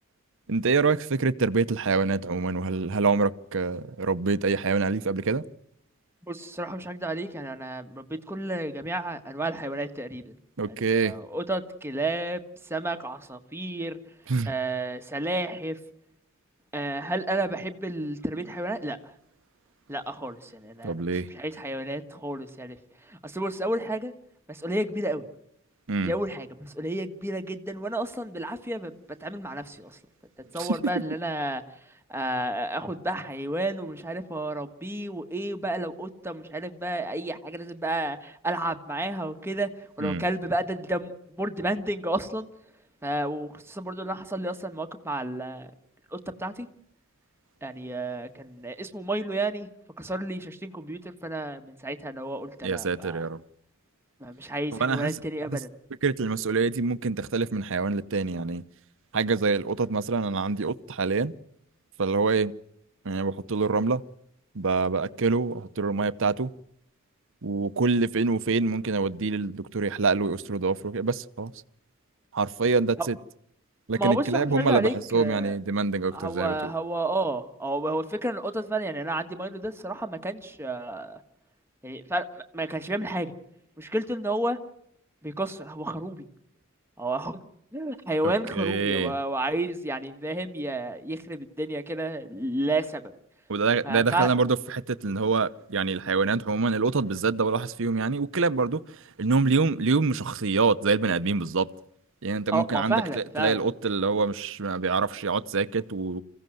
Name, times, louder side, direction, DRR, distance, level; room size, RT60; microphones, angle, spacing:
voice 1, 0.5-5.4 10.6-11.1 14.3-14.5 20.8-21.3 25.9-26.1 30.6-30.8 40.0-40.2 52.6-53.4 54.8-55.2 55.5-55.6 56.0-58.6 59.1-61.3 62.0-62.5 63.0-64.0 64.5-66.5 67.4-71.5 72.3-73.2 73.9-76.7 88.5-89.1 93.5-101.7 102.2-106.2, right 4 dB, 65° right, 0.8 m, -26 dB
voice 2, 6.2-10.2 10.8-12.4 12.7-14.0 14.5-15.8 16.7-19.0 19.9-21.0 21.3-22.8 23.1-24.1 24.5-25.2 26.0-29.9 30.5-31.6 32.1-39.7 40.0-41.1 41.4-42.5 43.0-45.7 46.1-46.7 47.6-49.7 50.0-53.2 54.2-55.7 73.0-73.1 74.0-75.5 76.1-81.2 81.8-82.2 82.5-83.3 83.8-84.6 85.2-86.2 87.0-87.4 87.7-93.1 93.8-94.3 102.5-103.6, right 1 dB, 10° right, 1.5 m, -31 dB
27.0 x 16.0 x 7.8 m
head